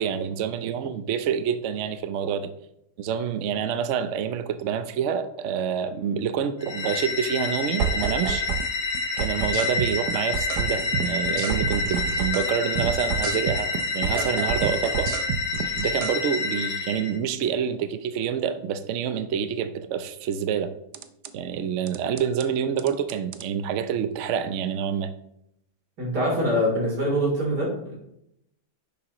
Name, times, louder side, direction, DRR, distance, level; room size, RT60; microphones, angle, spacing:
voice 1, 0.0-2.5 3.0-8.5 9.2-13.7 13.9-15.1 15.8-20.7 21.3-25.1, right 8 dB, 90° right, 10 dB, 0.6 m, -27 dB
sound 1, 6.6-17.1, left 4 dB, 80° left, 2.7 m, -28 dB
sound 2, 7.8-8.7 8.9-12.5 12.8-16.1 20.9-21.3 21.9-22.5 22.8-23.5, right 8 dB, 70° right, 1.0 m, -29 dB
voice 2, 26.0-28.0, equal, 55° right, -2 dB, 3.8 m, -24 dB
10.5 x 7.0 x 3.0 m, 0.77 s
omnidirectional pair, 2.2 m